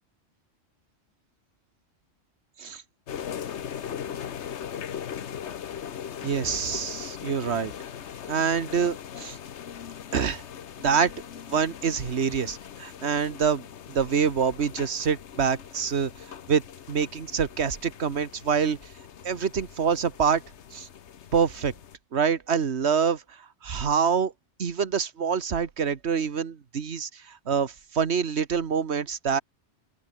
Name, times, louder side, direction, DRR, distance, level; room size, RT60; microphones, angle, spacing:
sound 1, 3.1-22.0, left 8 dB, 70° left, 1.2 m, -40 dB
voice 1, 6.2-7.7 8.3-9.4 10.1-10.4 10.8-11.1 11.5-16.1 16.5-18.8 19.2-20.4 20.7-20.9 21.3-21.7 22.1-23.2 23.6-24.3 24.6-29.4, right 6 dB, 65° right, 1.6 m, -26 dB
open air
omnidirectional pair, 1.2 m